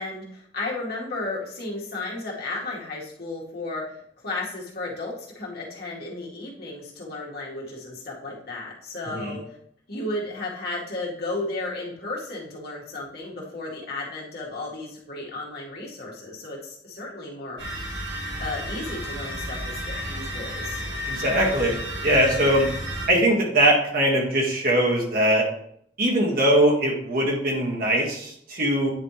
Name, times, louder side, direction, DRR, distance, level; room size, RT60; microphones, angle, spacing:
voice 1, 0.0-9.6 9.9-17.6 18.4-20.8, left 2 dB, 60° left, -4 dB, 2.1 m, -34 dB
sound 1, 17.6-23.1, equal, 70° right, 3.1 m, -32 dB
voice 2, 21.1-22.7 23.1-25.4 26.0-28.9, right 1 dB, 55° right, -2 dB, 2.0 m, -21 dB
9.9 x 4.3 x 3.3 m, 0.67 s
head